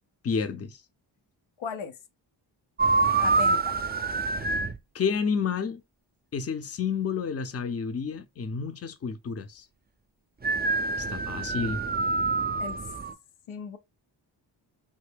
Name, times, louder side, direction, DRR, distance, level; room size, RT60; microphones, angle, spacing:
voice 1, 0.2-0.8 4.9-5.8 6.3-9.7 11.0-11.8, left 6 dB, 30° left, 0.6 m, -30 dB
voice 2, 1.6-2.0 3.2-3.8 12.6-12.8 13.5-13.8, left 5 dB, 90° left, 0.7 m, -36 dB
sound 1, 2.8-4.8 10.4-13.1, right 3 dB, 20° right, 0.5 m, -26 dB
3.4 x 2.1 x 3.4 m
cardioid pair, 60°, 47 cm